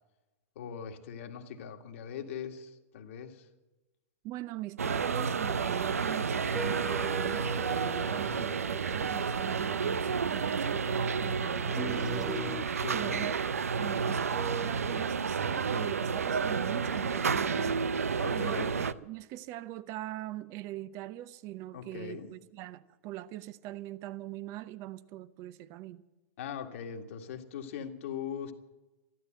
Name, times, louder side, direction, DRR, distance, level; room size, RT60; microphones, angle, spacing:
voice 1, 0.6-3.5 8.1-8.5 12.7-13.3 18.2-18.7 21.7-22.3 26.4-28.5, left 8 dB, 65° left, 2.0 m, -41 dB
voice 2, 4.2-12.3 12.9-13.4 13.8-17.8 18.3-26.0, right 14 dB, 40° right, 0.8 m, -41 dB
sound 1, 4.8-18.9, right 5 dB, 90° right, 0.6 m, -31 dB
sound 2, 6.5-12.6, right 2 dB, 10° right, 0.6 m, -42 dB
13.5 x 12.5 x 7.8 m
hypercardioid pair, 115°, 8 cm